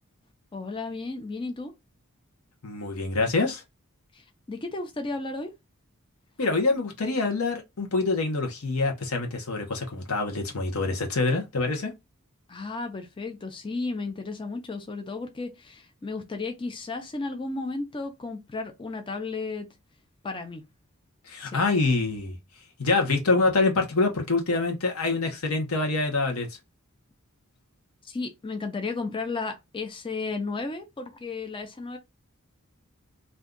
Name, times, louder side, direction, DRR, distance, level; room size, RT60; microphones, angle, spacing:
voice 1, 0.5-1.7 4.1-5.5 12.5-19.7 20.2-20.6 21.4-21.6 28.0-32.0, left 3 dB, 25° left, 0.4 m, -34 dB
voice 2, 2.6-3.6 6.4-11.9 21.3-22.4 22.8-26.5, left 3 dB, 90° left, 0.9 m, -25 dB
2.6 x 2.3 x 3.6 m
head